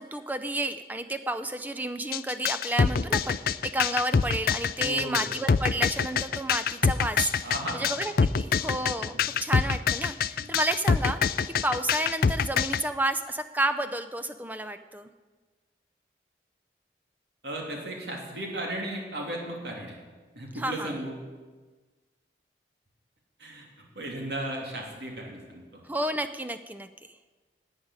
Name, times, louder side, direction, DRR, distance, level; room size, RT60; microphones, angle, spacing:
voice 1, 0.0-7.5 7.7-15.1 20.5-20.9 25.8-26.9, right 1 dB, 10° right, 10 dB, 0.5 m, -31 dB
sound 1, 2.1-12.8, left 6 dB, 55° left, 0.4 m, -25 dB
voice 2, 4.8-5.3 7.4-7.9 10.4-10.5 17.4-20.0 20.3-21.2 23.4-23.7 23.9-25.8, right 1 dB, 70° right, 0 dB, 3.0 m, -35 dB
11.5 x 8.9 x 9.7 m, 1.3 s
head